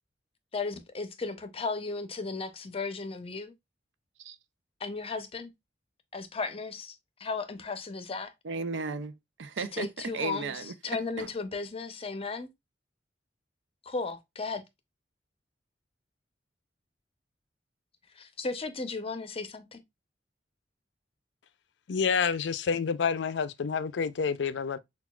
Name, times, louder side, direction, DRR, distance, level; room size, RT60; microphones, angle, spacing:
voice 1, 0.5-3.5 4.8-5.5 6.1-8.3 9.6-12.5 13.8-14.6 18.2-19.8, left 4 dB, 35° left, 0.6 m, -35 dB
voice 2, 8.4-10.7 11.2-11.3, right 4 dB, 90° right, 0.5 m, -35 dB
voice 3, 21.9-24.8, left 6 dB, 75° left, 0.4 m, -28 dB
5.8 x 2.4 x 2.3 m
head